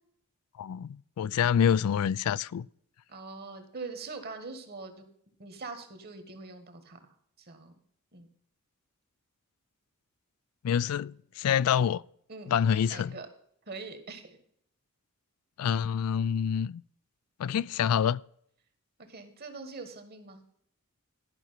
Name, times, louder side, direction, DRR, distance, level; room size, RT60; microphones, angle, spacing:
voice 1, 0.6-2.7 10.6-12.0 12.5-13.2 15.6-16.8 17.4-18.2, left 8 dB, 80° left, 0.3 m, -27 dB
voice 2, 3.1-5.0 5.4-7.0 7.4-7.7 8.1-8.3 12.3-13.3 13.7-14.4 19.1-20.4, right 4 dB, 45° right, 1.7 m, -43 dB
12.0 x 6.0 x 5.7 m
head